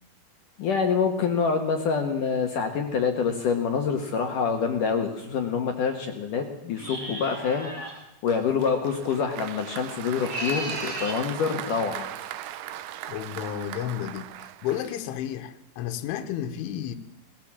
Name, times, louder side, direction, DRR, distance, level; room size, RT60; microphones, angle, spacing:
voice 1, 0.6-7.7 8.2-12.1, left 6 dB, 65° left, 2.2 m, -26 dB
sound 1, 6.8-8.0 10.1-11.2, right 1 dB, 20° right, 2.8 m, -35 dB
Applause, 8.3-15.4, right 13 dB, 80° right, 2.3 m, -39 dB
voice 2, 13.1-17.0, left 10 dB, 80° left, 3.5 m, -32 dB
21.0 x 17.0 x 7.5 m
omnidirectional pair, 5.5 m